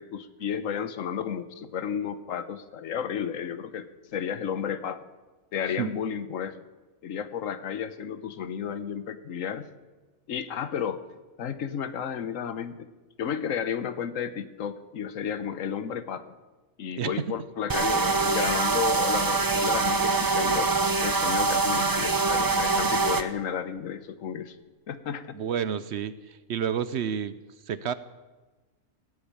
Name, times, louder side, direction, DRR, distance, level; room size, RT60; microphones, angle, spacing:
voice 1, 0.0-5.0 5.5-6.6 7.0-9.7 10.3-11.0 11.4-12.9 13.2-16.3 16.8-20.7 21.0-24.6 24.9-25.4, left 8 dB, 75° left, 12 dB, 1.3 m, -32 dB
sound 1, 17.7-23.2, right 3 dB, 25° right, 0.5 m, -24 dB
voice 2, 25.3-27.4 27.7-27.9, right 8 dB, 60° right, 15 dB, 0.8 m, -30 dB
16.5 x 8.5 x 8.7 m, 1.2 s
omnidirectional pair, 1.4 m